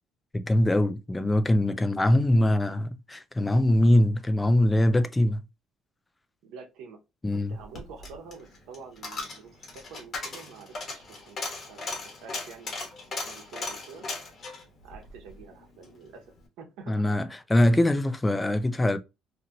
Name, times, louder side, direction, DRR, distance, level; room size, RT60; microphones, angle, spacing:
voice 1, 0.3-5.4 7.2-7.5 16.9-19.0, left 1 dB, 10° left, 0.3 m, -23 dB
voice 2, 6.4-7.0 7.3-12.7 13.1-14.1 14.8-16.2 16.6-17.3, right 5 dB, 85° right, 1.0 m, -47 dB
Coin (dropping), 7.5-16.0 16.3-16.4, left 3 dB, 35° left, 1.1 m, -38 dB
2.9 x 2.8 x 2.5 m
cardioid pair, 160°, 0 cm